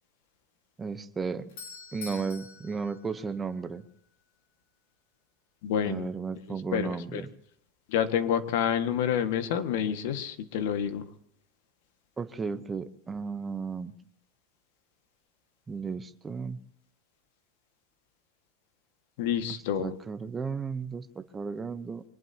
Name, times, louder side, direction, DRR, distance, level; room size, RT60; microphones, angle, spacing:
voice 1, 0.8-1.5 1.9-3.8 5.8-7.3 12.2-13.9 15.7-16.6 19.5-22.0, right 5 dB, 10° right, 10 dB, 0.9 m, -34 dB
Doorbell, 1.1-4.0, left 5 dB, 75° left, 7.2 m, -46 dB
voice 2, 5.6-6.1 6.7-7.2 7.9-11.1 19.2-20.0, left 8 dB, 60° left, 9 dB, 1.8 m, -28 dB
24.5 x 20.0 x 2.9 m, 0.69 s
supercardioid pair, 170°, 0 cm